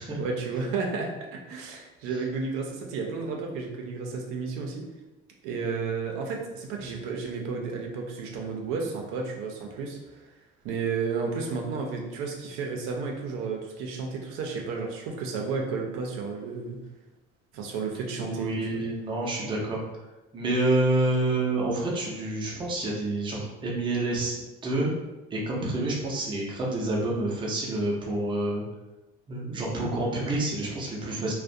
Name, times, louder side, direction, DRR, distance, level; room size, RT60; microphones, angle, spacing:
voice 1, 0.2-4.8 5.4-10.2 10.6-16.8 17.5-18.8, right 4 dB, 85° right, 1 dB, 0.5 m, -32 dB
voice 2, 18.2-19.8 20.3-24.4 24.6-24.9 25.3-28.6 29.3-31.3, right 2 dB, 25° right, -3 dB, 0.5 m, -28 dB
2.3 x 2.1 x 2.6 m, 1.1 s
cardioid pair, 135°, 21 cm